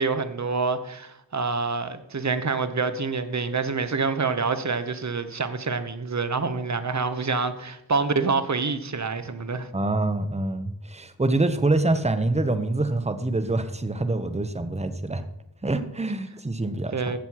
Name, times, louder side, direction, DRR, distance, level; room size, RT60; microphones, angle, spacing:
voice 1, 0.0-9.7 16.9-17.2, right 4 dB, 40° right, 1.1 m, -27 dB
voice 2, 9.7-15.2 15.6-17.0, right 2 dB, 15° right, 0.9 m, -25 dB
13.0 x 7.7 x 4.7 m
wide cardioid pair, 85°, 45 cm